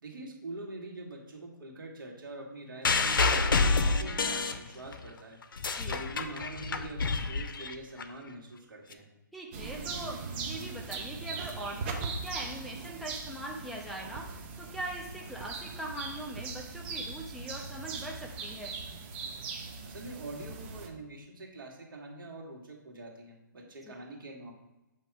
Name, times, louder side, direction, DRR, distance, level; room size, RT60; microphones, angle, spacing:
voice 1, 0.0-5.4 5.8-9.1 19.8-24.5, right 2 dB, 75° right, 0 dB, 1.6 m, -44 dB
sound 1, 2.8-5.1 5.4-8.0 8.9-9.0, left 4 dB, 75° left, 0.6 m, -28 dB
voice 2, 9.3-10.2 10.4-14.3 14.6-18.7 23.9-24.0, right 1 dB, ahead, -3 dB, 0.4 m, -41 dB
sound 2, 9.5-20.9, right 4 dB, 30° right, 0.7 m, -40 dB
7.7 x 2.8 x 4.6 m, 1.0 s
hypercardioid pair, 155°, 11 cm